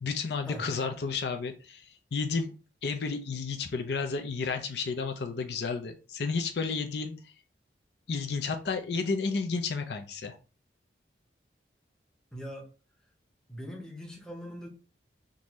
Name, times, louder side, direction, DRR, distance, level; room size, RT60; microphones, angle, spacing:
voice 1, 0.0-2.5 2.8-7.3 8.1-10.3, left 4 dB, 65° left, 6 dB, 0.5 m, -32 dB
voice 2, 12.3-12.7 13.5-14.7, equal, 5° left, 0 dB, 0.7 m, -41 dB
3.7 x 2.6 x 3.0 m, 0.35 s
head